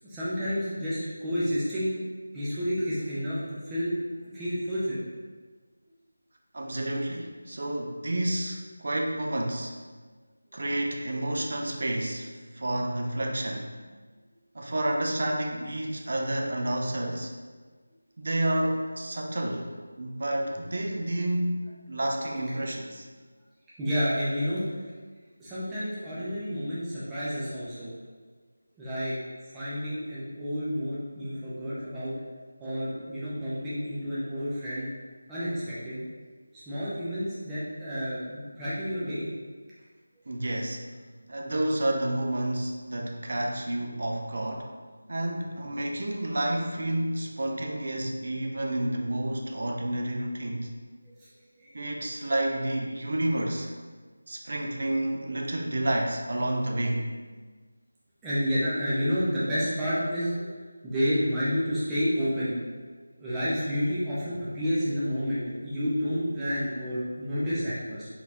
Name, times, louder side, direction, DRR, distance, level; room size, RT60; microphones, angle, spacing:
voice 1, 0.0-1.9 2.3-3.9 4.2-5.0 23.8-24.7 25.4-27.9 28.8-29.1 29.5-32.1 32.6-34.9 35.3-36.0 36.5-39.3 51.1-51.3 51.6-51.7 58.2-60.5 60.8-62.5 63.2-68.1, equal, 5° right, -12 dB, 0.6 m, -30 dB
voice 2, 6.5-9.8 10.5-13.7 14.5-17.4 18.2-23.1 40.3-40.8 41.3-44.7 45.1-50.7 51.7-53.7 54.3-57.1, right 1 dB, 55° right, 1 dB, 0.6 m, -30 dB
4.1 x 3.8 x 2.9 m, 1.5 s
figure-of-eight pair, 170°, 0 cm